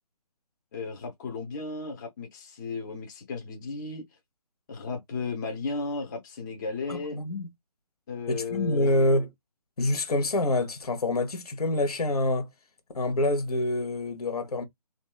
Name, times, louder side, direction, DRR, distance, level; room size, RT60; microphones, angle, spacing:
voice 1, 0.7-4.0 4.7-7.2 8.1-9.0, left 4 dB, 30° left, 0.6 m, -34 dB
voice 2, 6.9-7.5 8.3-9.3 9.8-12.5 12.9-14.6, left 1 dB, 65° left, 1.0 m, -26 dB
2.7 x 2.3 x 2.3 m
figure-of-eight pair, 150°, 20 cm